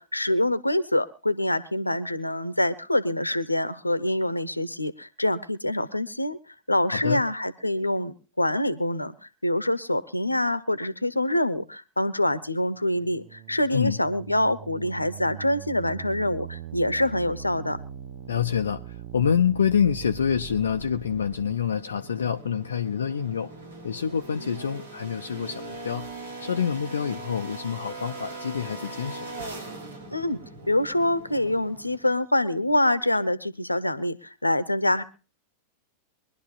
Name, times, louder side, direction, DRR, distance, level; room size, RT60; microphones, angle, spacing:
voice 1, 0.0-6.4 6.7-17.8 30.1-30.4 30.7-35.0, left 1 dB, 85° left, 1.0 m, -25 dB
voice 2, 6.9-7.2 13.7-14.0 18.3-23.5 23.8-26.1 26.4-29.4, left 7 dB, 70° left, 0.7 m, -26 dB
sound 1, 12.8-21.5, right 9 dB, 45° right, 0.9 m, -41 dB
sound 2, 20.3-32.1, right 2 dB, 65° right, 3.8 m, -41 dB
23.5 x 12.0 x 2.5 m
figure-of-eight pair, 90°, 0 cm